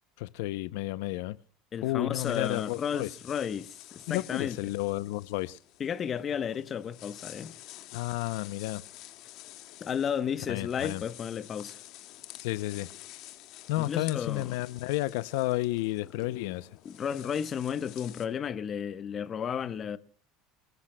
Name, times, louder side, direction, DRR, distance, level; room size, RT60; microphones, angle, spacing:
voice 1, 0.2-1.4 1.8-3.1 4.1-5.6 7.9-8.8 10.5-11.0 12.4-12.9 13.7-16.7, left 18 dB, 75° left, 0.6 m, -31 dB
voice 2, 1.7-4.6 5.8-7.5 9.8-11.8 13.8-14.5 16.8-20.0, left 8 dB, 30° left, 1.0 m, -33 dB
sound 1, 2.2-18.3, left 15 dB, 55° left, 2.0 m, -49 dB
29.0 x 13.5 x 2.2 m
supercardioid pair, 120°, 0 cm